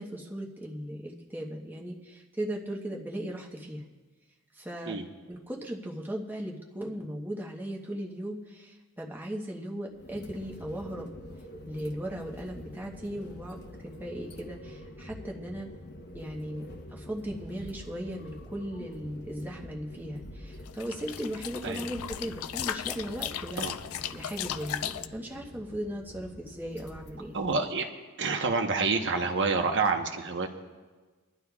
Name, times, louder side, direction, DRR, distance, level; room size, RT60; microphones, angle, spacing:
voice 1, 0.0-3.8 4.5-11.1 11.7-13.5 13.8-15.7 16.1-16.6 16.9-23.7 24.1-27.4, right 1 dB, 10° right, -1 dB, 1.0 m, -37 dB
sound 1, 9.9-27.5, left 1 dB, 50° left, 1.0 m, -46 dB
sound 2, 20.7-25.1, left 11 dB, 65° left, 0.4 m, -36 dB
voice 2, 27.3-27.9 28.2-30.5, right 4 dB, 55° right, 4 dB, 1.0 m, -28 dB
25.0 x 11.0 x 2.4 m, 1.3 s
head